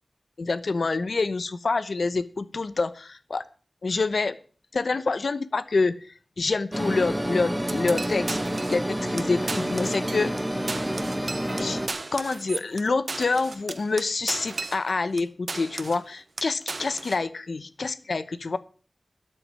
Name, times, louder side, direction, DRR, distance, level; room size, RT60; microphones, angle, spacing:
voice 1, 0.4-3.4 3.8-4.4 4.7-8.4 8.7-10.3 11.6-11.8 12.1-18.6, left 3 dB, 80° left, 13 dB, 0.9 m, -27 dB
sound 1, 6.7-11.9, equal, 10° right, 1.8 m, -29 dB
sound 2, 7.7-8.9 9.2-9.3 9.5-10.4 10.7-15.2 15.5-16.1 16.4-17.2, right 3 dB, 60° right, 1.0 m, -35 dB
12.5 x 6.5 x 8.9 m, 0.41 s
wide cardioid pair, 65°, 0 cm